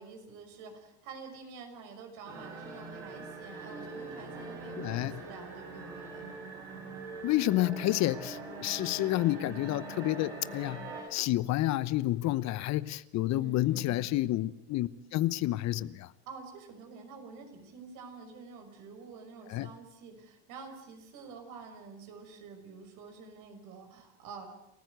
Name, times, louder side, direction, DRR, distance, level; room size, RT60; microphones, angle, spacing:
voice 1, 0.0-6.3 13.3-14.2 16.3-24.5, right 4 dB, 65° right, 5 dB, 5.9 m, -48 dB
sound 1, 2.3-11.0, right 3 dB, 85° right, 7.8 m, -43 dB
voice 2, 4.8-5.1 7.2-16.1 19.5-19.7, left 16 dB, 55° left, 18 dB, 0.9 m, -30 dB
29.0 x 15.0 x 8.1 m, 0.84 s
hypercardioid pair, 80°, 33 cm